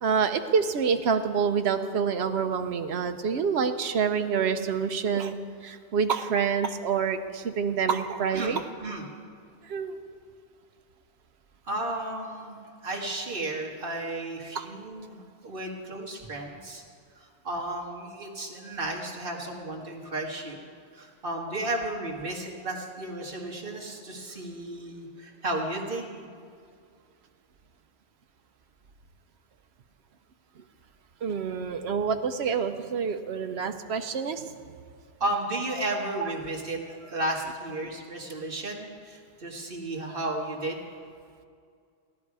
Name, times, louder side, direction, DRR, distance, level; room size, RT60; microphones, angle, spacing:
voice 1, 0.0-5.3 5.6-8.6 9.6-10.0 14.5-14.7 30.6-30.7 31.2-34.5 36.2-36.3, right 6 dB, 75° right, 8 dB, 1.0 m, -27 dB
voice 2, 8.3-9.0 11.7-16.8 17.2-20.6 20.9-26.3 35.2-40.8, right 2 dB, 55° right, -1 dB, 1.9 m, -33 dB
17.5 x 11.0 x 4.8 m, 2.2 s
omnidirectional pair, 1.1 m